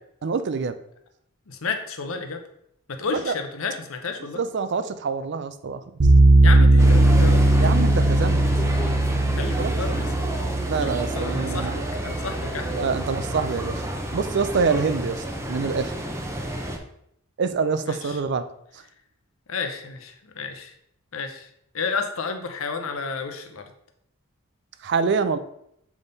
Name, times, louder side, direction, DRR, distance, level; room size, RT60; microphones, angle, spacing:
voice 1, 0.2-0.8 3.1-3.3 4.3-5.8 7.6-8.4 9.6-9.7 10.7-11.8 12.7-13.8 14.1-15.9 17.4-18.4 24.8-25.4, right 5 dB, 55° right, 11 dB, 0.4 m, -25 dB
voice 2, 1.5-2.4 2.9-4.4 6.4-7.5 9.3-10.1 10.8-12.9 17.9-18.2 19.5-20.7 21.1-21.5 21.7-23.7, left 5 dB, 75° left, 6 dB, 0.8 m, -31 dB
sound 1, 6.0-13.1, right 1 dB, 75° right, 1.0 m, -18 dB
sound 2, 6.8-16.8, right 1 dB, 15° right, 0.6 m, -31 dB
7.1 x 3.6 x 4.0 m, 0.74 s
head